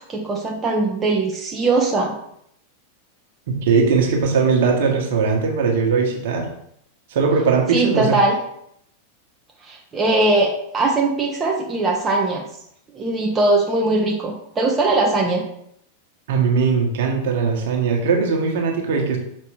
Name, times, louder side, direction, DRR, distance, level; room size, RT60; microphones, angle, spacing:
voice 1, 0.0-2.2 7.7-8.4 9.6-12.4 12.9-15.4, right 2 dB, 20° right, 0 dB, 0.9 m, -20 dB
voice 2, 3.5-6.5 7.1-8.2 16.3-19.2, right 5 dB, 55° right, 1 dB, 1.4 m, -19 dB
6.6 x 5.2 x 3.4 m, 0.72 s
figure-of-eight pair, 90°, 0 cm